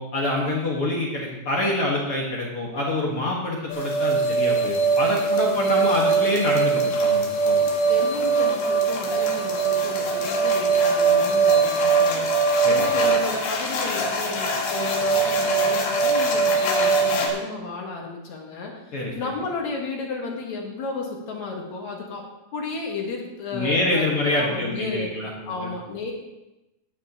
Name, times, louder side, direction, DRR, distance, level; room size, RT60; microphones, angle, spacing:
voice 1, 0.0-7.7 12.6-12.9 18.9-19.1 23.5-25.7, left 1 dB, 70° left, -3 dB, 1.3 m, -26 dB
sound 1, 3.7-17.3, right 4 dB, 90° left, 4.1 m, -21 dB
voice 2, 5.0-6.0 7.9-22.2 22.5-24.1 24.4-25.1 25.5-26.1, left 3 dB, 55° left, 0 dB, 2.2 m, -33 dB
17.5 x 9.1 x 2.9 m, 0.97 s
omnidirectional pair, 5.1 m